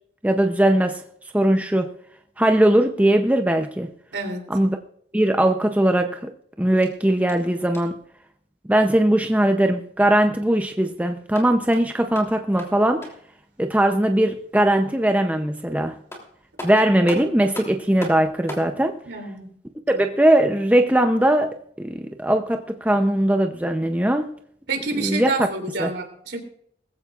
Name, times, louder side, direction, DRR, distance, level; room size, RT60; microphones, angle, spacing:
voice 1, 0.2-1.0 1.3-2.0 2.4-3.9 4.5-4.8 5.1-6.3 6.6-8.0 8.7-13.1 13.6-16.0 16.6-19.0 19.9-24.3 25.0-25.5 25.8-25.9, right 1 dB, 10° right, 0.6 m, -20 dB
voice 2, 4.1-4.4 19.1-19.5 24.7-26.4, right 3 dB, 70° right, 3.2 m, -28 dB
sound 1, 6.8-8.1 11.1-13.4 15.6-15.7 16.1-18.7, left 1 dB, 15° left, 3.1 m, -39 dB
20.0 x 15.0 x 2.5 m
head